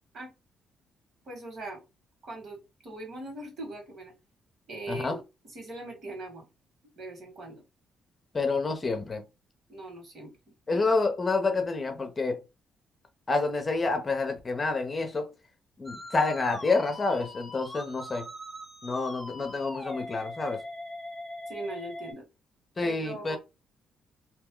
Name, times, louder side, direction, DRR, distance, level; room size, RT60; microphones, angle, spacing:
voice 1, 1.3-1.8 2.2-4.1 4.7-6.5 7.0-7.6 9.7-10.3 21.5-22.2 22.8-23.4, right 2 dB, 55° right, 1.8 m, -40 dB
voice 2, 8.3-9.3 10.7-12.4 13.3-15.3 15.8-18.3 18.8-20.6 22.8-23.4, left 3 dB, 30° left, 0.8 m, -28 dB
Musical instrument, 15.8-22.1, left 1 dB, 5° right, 1.0 m, -41 dB
2.7 x 2.2 x 3.7 m
cardioid pair, 90°, 0 cm